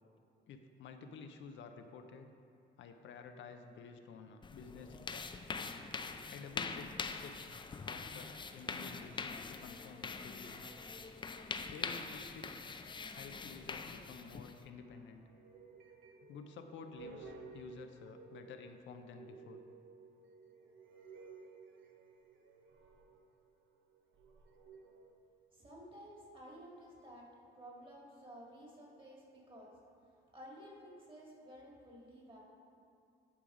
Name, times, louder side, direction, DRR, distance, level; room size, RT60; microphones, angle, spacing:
voice 1, 0.5-2.3 2.8-5.3 6.3-7.5 7.8-10.7 11.6-12.7 13.1-15.3 16.3-19.6, left 5 dB, 70° left, 6 dB, 0.5 m, -52 dB
sound 1, 4.4-14.6, left 4 dB, 25° left, 0.4 m, -44 dB
sound 2, 10.5-11.3 13.0-13.8 14.6-25.1, right 4 dB, 75° right, 0.8 m, -56 dB
voice 2, 25.5-29.7 30.3-32.4, equal, 25° right, -3 dB, 1.9 m, -53 dB
10.0 x 3.8 x 4.9 m, 2.4 s
cardioid pair, 90°, 20 cm